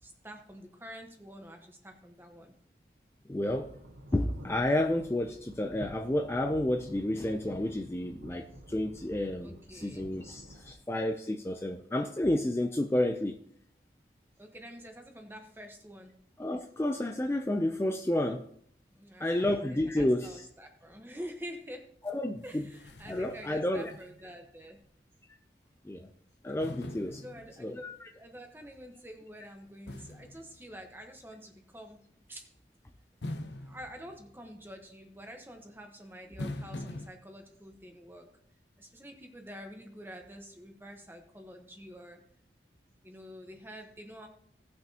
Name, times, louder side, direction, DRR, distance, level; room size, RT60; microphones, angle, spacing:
voice 1, 0.0-2.5 9.4-10.0 14.4-16.1 19.0-21.9 22.4-24.8 27.1-27.7 28.2-32.0 32.3-32.4 33.5-38.3 38.8-42.2 43.0-44.3, equal, 10° right, 4 dB, 1.1 m, -47 dB
voice 2, 3.3-3.7 4.1-13.4 16.4-18.4 19.2-20.5 22.0-22.7 23.1-23.9 25.9-26.1 26.4-27.2 27.6-28.1, left 1 dB, 15° left, 4 dB, 0.4 m, -30 dB
sound 1, 3.4-10.7, equal, 75° right, 1.1 m, -50 dB
sound 2, 22.1-22.2 22.5-24.5 24.8-24.9 26.6-28.0 29.9-31.3 33.2-34.7 36.4-37.1, left 1 dB, 80° left, 0.8 m, -43 dB
18.0 x 6.0 x 2.9 m, 0.66 s
head